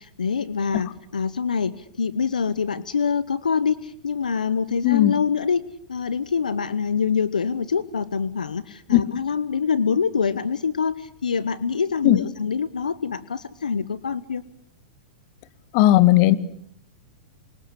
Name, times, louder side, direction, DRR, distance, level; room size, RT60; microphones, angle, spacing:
voice 1, 0.0-5.6 5.9-14.4, left 6 dB, 85° left, 17 dB, 1.1 m, -25 dB
voice 2, 4.8-5.2 8.9-9.0 12.0-12.2 15.7-16.4, left 15 dB, 50° left, 15 dB, 1.8 m, -16 dB
27.5 x 25.0 x 8.4 m, 0.68 s
hypercardioid pair, 105°, 4 cm